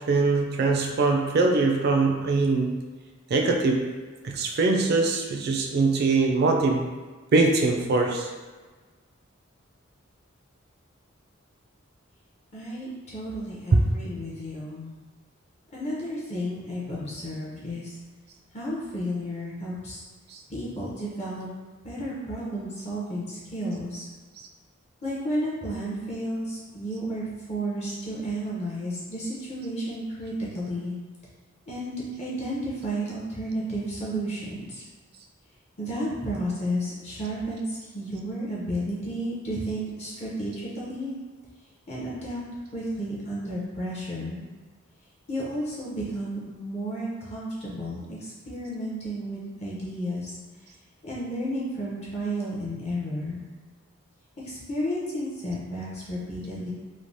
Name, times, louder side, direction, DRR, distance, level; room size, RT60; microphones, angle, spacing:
voice 1, 0.0-2.8 3.3-3.9 4.2-6.9 7.3-8.3 13.7-13.9 20.3-20.4, right 3 dB, 50° right, 2 dB, 0.3 m, -22 dB
voice 2, 12.5-15.0 15.7-17.9 18.5-20.0 20.5-21.5 21.8-24.0 25.0-30.9 31.7-34.8 35.8-41.1 41.9-42.4 42.7-44.4 45.3-50.3 51.0-53.4 54.4-56.7, equal, 35° left, -6 dB, 0.6 m, -32 dB
3.1 x 2.0 x 2.6 m, 1.3 s
head